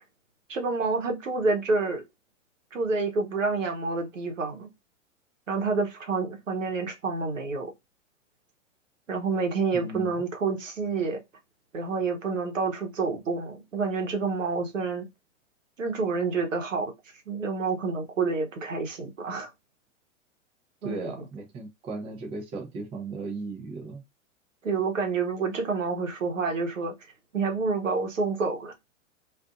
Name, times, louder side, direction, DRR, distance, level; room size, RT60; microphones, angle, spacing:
voice 1, 0.5-2.0 2.7-4.7 5.5-7.7 9.1-11.2 11.7-15.1 15.8-16.9 17.3-19.5 20.8-21.1 24.6-26.9 27.3-28.9, right 4 dB, 80° right, 0.9 m, -28 dB
voice 2, 9.7-10.1 20.8-24.0, right 3 dB, 15° right, 0.5 m, -36 dB
2.5 x 2.5 x 2.3 m
figure-of-eight pair, 100°, 38 cm